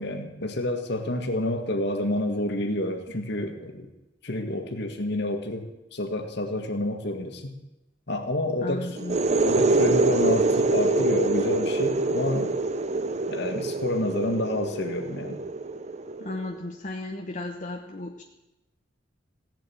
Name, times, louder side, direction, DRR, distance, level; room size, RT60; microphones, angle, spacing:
voice 1, 0.0-3.9 4.2-7.5 8.1-8.9 9.4-12.5 13.3-15.4, left 1 dB, 65° left, 4 dB, 1.9 m, -29 dB
voice 2, 8.6-9.2 16.2-18.2, left 2 dB, 45° left, 2 dB, 1.2 m, -34 dB
sound 1, 9.0-16.5, right 2 dB, 40° right, 0.8 m, -25 dB
16.5 x 7.7 x 9.3 m, 0.95 s
head